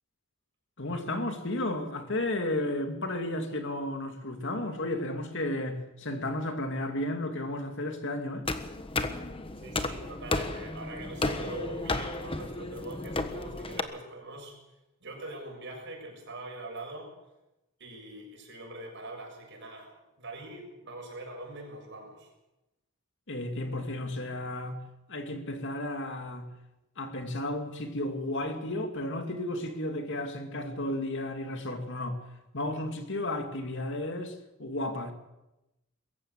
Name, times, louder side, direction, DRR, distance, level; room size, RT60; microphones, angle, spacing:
voice 1, 0.8-8.5 23.3-26.5 27.0-32.2 32.5-34.3 34.6-35.1, left 1 dB, 55° left, 2.5 m, -33 dB
sound 1, 8.5-13.8, left 2 dB, 25° left, 1.3 m, -33 dB
voice 2, 9.6-14.5 15.0-17.1 17.8-19.9 20.2-22.3, right 1 dB, 55° right, 7.0 m, -43 dB
22.0 x 15.0 x 8.3 m
head